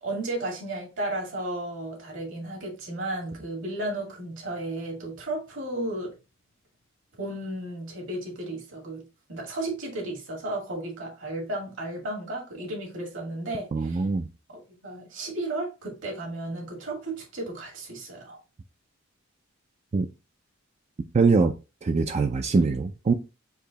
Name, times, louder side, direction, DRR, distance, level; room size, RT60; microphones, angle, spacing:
voice 1, 0.0-6.2 7.2-14.0 14.5-18.4, right 2 dB, 70° right, 2.2 m, -34 dB
voice 2, 13.7-14.2 19.9-20.1 21.1-21.5 21.8-23.1, right 4 dB, 35° right, 0.3 m, -22 dB
4.8 x 2.7 x 3.9 m
head